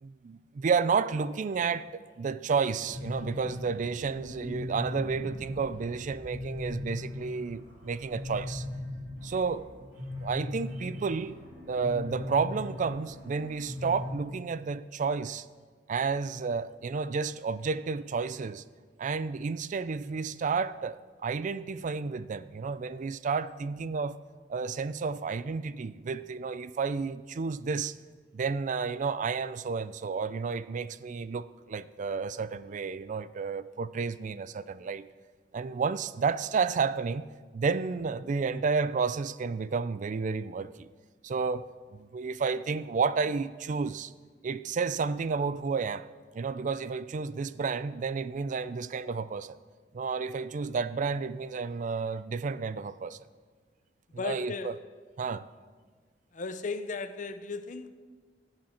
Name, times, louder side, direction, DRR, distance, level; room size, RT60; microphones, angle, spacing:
voice 1, 0.0-8.7 9.2-9.7 10.2-11.4 11.7-15.5 15.9-18.6 19.0-24.2 24.5-27.9 28.3-35.1 35.5-37.3 37.5-40.7 41.2-44.1 44.4-46.1 46.3-49.6 49.9-53.2 54.2-54.7 55.2-55.4, right 5 dB, 45° right, 0.4 m, -31 dB
sound 1, 2.9-14.1, left 1 dB, 65° right, 3.4 m, -39 dB
voice 2, 54.2-54.8 56.3-57.9, left 4 dB, 45° left, 0.6 m, -35 dB
17.0 x 7.7 x 4.4 m
head